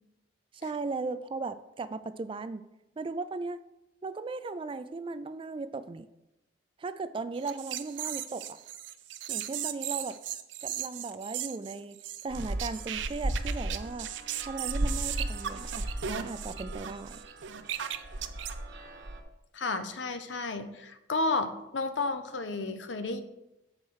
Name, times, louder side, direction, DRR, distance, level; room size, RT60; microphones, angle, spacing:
voice 1, 0.5-2.6 3.0-3.6 4.0-6.1 6.8-8.6 9.3-10.2 10.6-12.0 12.2-14.1 14.4-17.2, right 3 dB, 30° right, 13 dB, 0.3 m, -37 dB
sound 1, 7.4-18.5, right 10 dB, 85° right, 0.5 m, -37 dB
sound 2, 12.3-19.2, right 1 dB, 65° right, 1.0 m, -36 dB
voice 2, 19.5-23.2, left 3 dB, 80° left, 10 dB, 0.8 m, -32 dB
7.3 x 4.3 x 6.3 m, 0.91 s
head